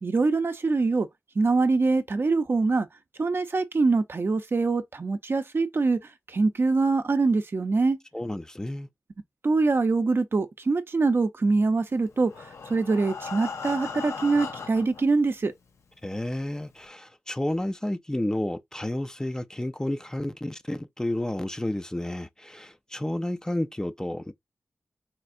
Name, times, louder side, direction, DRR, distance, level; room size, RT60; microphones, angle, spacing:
voice 1, 0.0-1.1 1.4-2.9 3.2-6.0 6.3-8.0 9.4-12.3 12.7-15.5, right 3 dB, 55° right, 0.5 m, -24 dB
voice 2, 8.1-8.9 16.0-24.3, left 1 dB, 15° left, 0.4 m, -31 dB
Breathing, 12.1-15.0 15.8-15.9 16.3-16.4 16.8-16.9, left 5 dB, 85° left, 0.6 m, -37 dB
4.3 x 2.4 x 2.5 m
cardioid pair, 55°, 5 cm